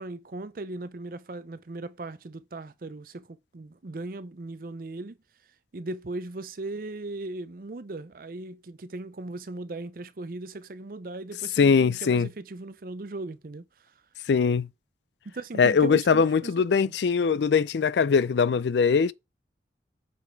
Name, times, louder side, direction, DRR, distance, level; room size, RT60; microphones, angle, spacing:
voice 1, 0.0-5.2 5.7-13.9 15.2-16.5 16.8-16.9, right 2 dB, 55° right, 0.6 m, -38 dB
voice 2, 11.6-12.3 14.3-14.7 15.6-19.1, left 5 dB, 80° left, 0.4 m, -21 dB
7.1 x 4.1 x 4.6 m
head